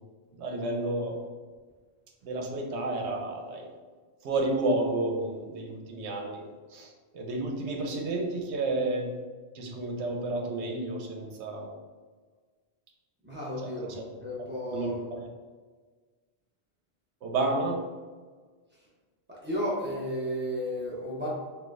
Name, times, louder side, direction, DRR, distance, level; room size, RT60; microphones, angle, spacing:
voice 1, 0.4-1.2 2.2-3.7 4.2-6.4 6.7-9.1 9.5-11.7 13.6-14.0 14.7-14.9 17.2-17.8, right 2 dB, 85° right, 1 dB, 0.9 m, -31 dB
voice 2, 13.2-14.9 19.3-21.3, equal, 10° right, -7 dB, 0.7 m, -33 dB
4.4 x 2.2 x 2.3 m, 1.5 s
omnidirectional pair, 1.1 m